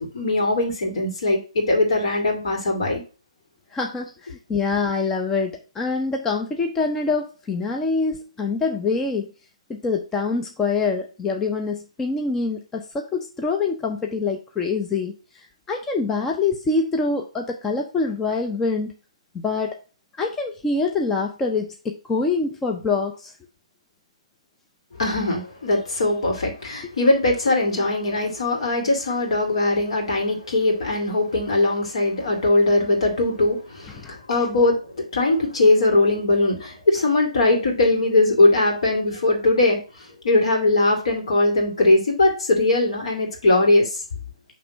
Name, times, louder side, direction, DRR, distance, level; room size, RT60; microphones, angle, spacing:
voice 1, 0.1-3.0 24.9-44.0, left 2 dB, 55° left, 2 dB, 2.1 m, -20 dB
voice 2, 3.7-9.3 9.7-18.9 19.4-19.8 20.2-23.3 34.0-34.1, left 4 dB, 10° left, 2 dB, 0.5 m, -25 dB
5.9 x 3.1 x 5.6 m, 0.35 s
figure-of-eight pair, 140°, 4 cm